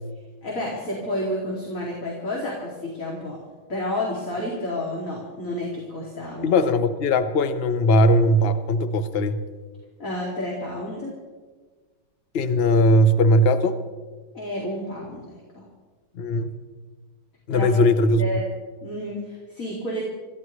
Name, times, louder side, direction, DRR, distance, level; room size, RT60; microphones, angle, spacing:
voice 1, 0.4-3.4 3.7-6.6 10.0-11.2 14.3-15.7 17.5-17.7 18.1-18.5 18.8-20.0, left 1 dB, 40° left, -3 dB, 3.0 m, -30 dB
voice 2, 6.4-9.4 12.3-13.8 16.1-16.5 17.5-18.4, left 1 dB, 60° left, 10 dB, 0.6 m, -19 dB
26.5 x 15.0 x 3.2 m, 1.4 s
omnidirectional pair, 2.4 m